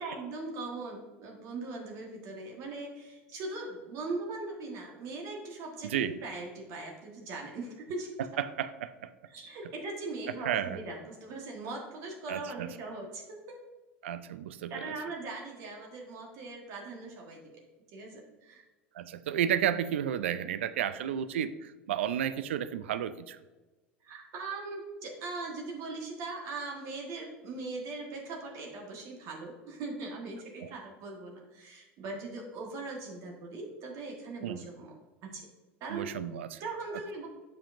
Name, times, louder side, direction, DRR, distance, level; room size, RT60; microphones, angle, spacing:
voice 1, 0.0-8.1 9.2-13.6 14.7-17.4 17.9-18.6 24.0-34.9 35.2-35.4 35.8-36.1 36.6-37.3, right 3 dB, 55° right, 0 dB, 1.3 m, -40 dB
voice 2, 8.4-9.1 10.5-10.8 12.3-12.7 14.0-14.9 19.0-23.4 34.4-34.7 35.9-36.6, right 10 dB, 80° right, 14 dB, 0.3 m, -32 dB
7.2 x 5.3 x 2.5 m, 1.2 s
hypercardioid pair, 80°, 6 cm